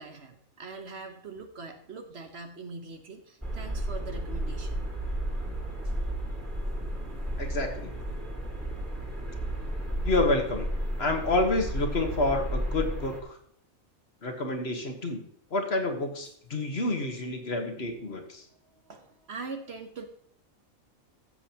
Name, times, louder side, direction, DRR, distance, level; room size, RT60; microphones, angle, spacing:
voice 1, 0.0-4.9 7.0-7.9 8.7-8.9 9.7-10.1 17.8-17.9 18.6-20.0, right 4 dB, 55° right, 5 dB, 1.2 m, -43 dB
sound 1, 3.4-13.2, right 1 dB, 10° right, 2.0 m, -33 dB
voice 2, 7.4-7.9 10.0-10.7 11.0-13.4 14.2-15.2 15.5-18.5, left 2 dB, 50° left, 4 dB, 1.4 m, -28 dB
14.5 x 7.5 x 2.8 m, 0.65 s
omnidirectional pair, 1.4 m